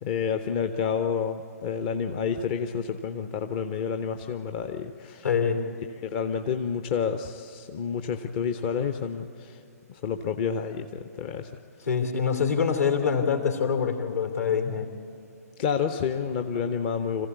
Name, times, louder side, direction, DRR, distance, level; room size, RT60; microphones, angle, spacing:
voice 1, 0.0-5.3 5.9-9.6 9.9-11.5 15.6-17.3, left 6 dB, 30° left, 7 dB, 0.8 m, -29 dB
voice 2, 5.2-5.6 11.9-14.9, left 6 dB, 65° left, 5 dB, 3.0 m, -25 dB
26.0 x 15.5 x 8.3 m, 2.6 s
figure-of-eight pair, 125°, 9 cm